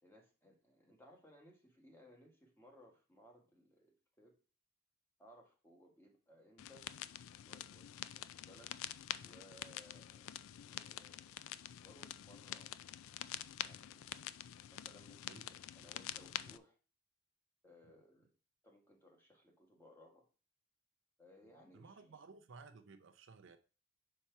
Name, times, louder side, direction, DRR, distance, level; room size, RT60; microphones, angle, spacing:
voice 1, 0.0-4.4 5.2-6.9 7.4-8.7 9.2-10.4 10.7-11.4 11.8-12.8 13.6-14.1 14.7-16.8 17.6-18.3 18.6-20.3 21.2-22.2, left 1 dB, 10° left, 1.2 m, -63 dB
sound 1, 6.6-16.6, left 12 dB, 70° left, 0.3 m, -47 dB
voice 2, 21.7-23.6, right 4 dB, 60° right, 0.5 m, -57 dB
5.5 x 4.3 x 4.6 m
head